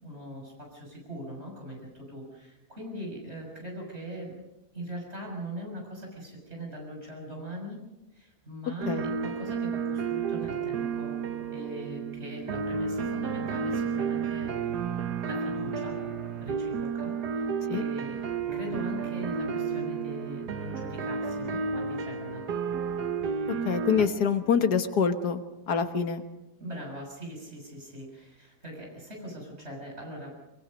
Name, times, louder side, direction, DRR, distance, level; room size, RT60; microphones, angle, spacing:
voice 1, 0.0-4.4 4.7-7.8 8.1-11.2 11.5-14.5 15.2-16.0 16.4-22.5 26.6-30.4, equal, 40° right, -1 dB, 6.9 m, -41 dB
sound 1, 8.8-24.1, right 6 dB, 85° right, 1.7 m, -32 dB
voice 2, 23.7-25.4 25.7-26.2, left 6 dB, 80° left, 8 dB, 1.9 m, -25 dB
24.0 x 23.0 x 5.4 m, 0.96 s
omnidirectional pair, 1.7 m